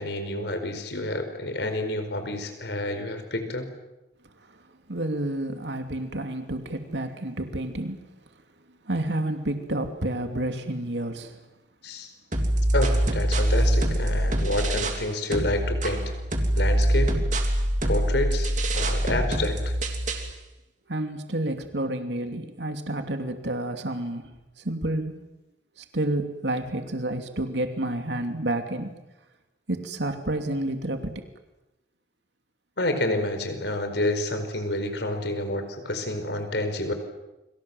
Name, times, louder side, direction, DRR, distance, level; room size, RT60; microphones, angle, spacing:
voice 1, 0.0-3.7 11.8-12.1 12.7-16.1 16.5-17.2 17.8-19.7 32.8-36.9, left 1 dB, 70° left, 8 dB, 4.7 m, -29 dB
voice 2, 4.9-8.0 8.9-11.3 20.9-24.3 24.6-25.3 25.9-28.9 29.7-31.1, right 1 dB, 75° right, 6 dB, 2.8 m, -29 dB
sound 1, 12.3-15.1 15.3-20.3, right 1 dB, 45° right, 3.2 m, -24 dB
29.5 x 24.5 x 7.8 m, 0.98 s
head